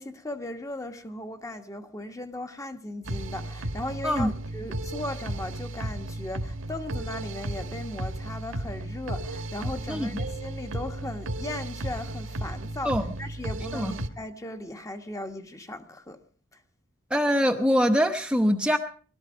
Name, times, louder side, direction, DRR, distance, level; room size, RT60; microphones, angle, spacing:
voice 1, 0.0-16.2 16.5-16.6, left 1 dB, 15° left, 1.2 m, -37 dB
sound 1, 3.0-14.1, right 1 dB, 80° right, 1.6 m, -34 dB
voice 2, 17.1-18.8, equal, 5° right, 0.9 m, -23 dB
21.0 x 13.0 x 5.0 m
head